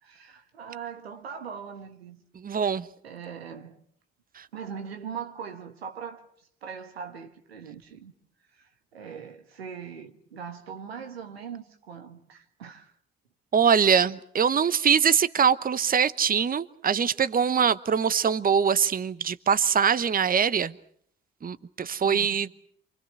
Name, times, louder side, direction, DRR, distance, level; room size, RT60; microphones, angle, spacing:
voice 1, 0.0-2.2 3.0-3.8 4.5-6.3 6.6-8.1 8.5-12.9 22.0-22.4, right 7 dB, 90° right, 1.5 m, -40 dB
voice 2, 2.4-2.9 13.5-20.7 21.4-22.5, right 7 dB, 30° right, 1.0 m, -23 dB
27.5 x 25.0 x 6.5 m
hypercardioid pair, 50°, 30 cm